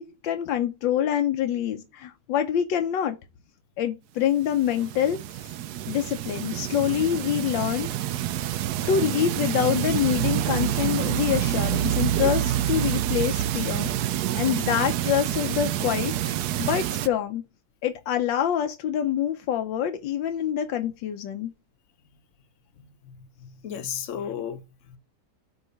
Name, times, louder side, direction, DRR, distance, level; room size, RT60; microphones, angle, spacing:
voice 1, 0.0-3.2 3.8-5.5 5.9-7.9 8.9-17.4 17.8-21.5, left 10 dB, 85° left, 1.5 m, -26 dB
sound 1, 4.3-17.1, right 12 dB, 70° right, 1.0 m, -27 dB
voice 2, 22.8-24.6 24.9-25.0, left 8 dB, 55° left, 1.0 m, -35 dB
8.4 x 3.2 x 5.5 m
omnidirectional pair, 2.0 m